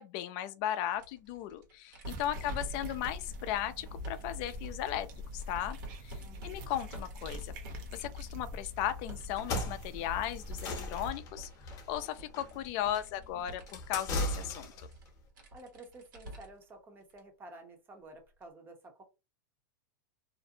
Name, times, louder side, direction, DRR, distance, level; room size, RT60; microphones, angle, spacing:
voice 1, 0.0-5.1 5.3-5.8 6.0-7.5 7.9-14.7, left 11 dB, 50° left, 0.4 m, -36 dB
sound 1, 0.9-9.4 9.7-16.7 17.1-17.2 18.4-18.5, right 1 dB, 85° right, 1.2 m, -50 dB
sound 2, 2.0-11.1, left 1 dB, 60° right, 0.7 m, -43 dB
voice 2, 2.2-2.7 6.2-6.6 15.5-19.0, right 2 dB, 20° right, 0.7 m, -52 dB
sound 3, 9.3-14.9, left 2 dB, 30° left, 0.8 m, -38 dB
2.5 x 2.1 x 2.7 m
supercardioid pair, 135°, 11 cm